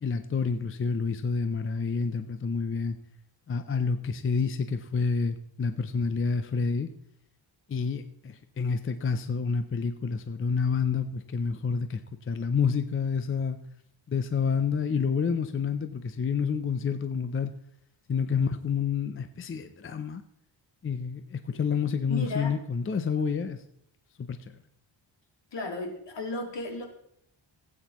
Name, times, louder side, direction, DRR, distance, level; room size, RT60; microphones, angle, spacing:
voice 1, 0.0-3.0 3.5-6.9 7.7-13.6 14.1-17.5 18.1-20.2 20.8-23.6 24.2-24.5, left 5 dB, 30° left, 9 dB, 0.4 m, -29 dB
voice 2, 22.1-22.6 25.5-26.8, left 2 dB, 60° left, 2 dB, 2.1 m, -34 dB
17.0 x 8.6 x 3.0 m, 0.73 s
wide cardioid pair, 170°, 48 cm